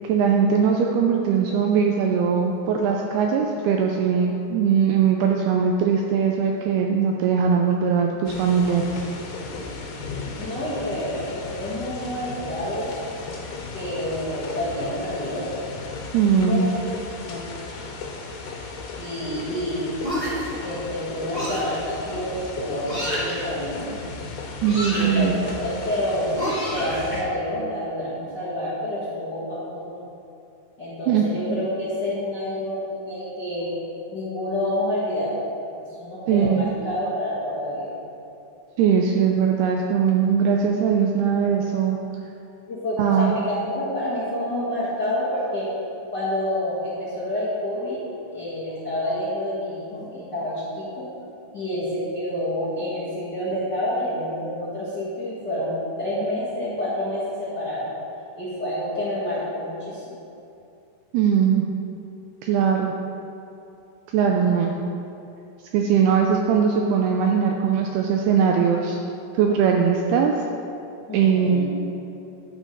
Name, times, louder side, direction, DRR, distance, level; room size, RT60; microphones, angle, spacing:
voice 1, 0.1-9.0 16.1-16.7 24.6-25.4 31.1-31.2 36.3-36.6 38.8-42.0 43.0-43.3 61.1-61.7 62.4-62.9 64.1-64.7 65.7-69.0 69.3-70.3 71.1-71.6, right 7 dB, 85° right, 1 dB, 2.3 m, -20 dB
sound 1, 8.3-27.2, left 3 dB, 75° left, 2.9 m, -36 dB
voice 2, 10.3-12.9 13.7-15.5 16.3-16.7 17.2-17.4 17.7-17.8 18.9-19.9 20.6-23.9 24.9-26.3 26.7-30.1 30.8-33.7 34.1-35.3 36.0-38.0 42.7-45.7 46.1-48.0 48.3-51.1 51.5-57.9 58.4-60.0 66.1-66.2 71.1-71.6, left 1 dB, 55° left, -12 dB, 1.2 m, -28 dB
sound 2, 20.0-20.5 21.3-21.8 22.8-23.4 24.6-25.2 26.3-27.2, equal, 25° right, 0.7 m, -28 dB
11.5 x 4.8 x 5.3 m, 2.7 s
omnidirectional pair, 5.0 m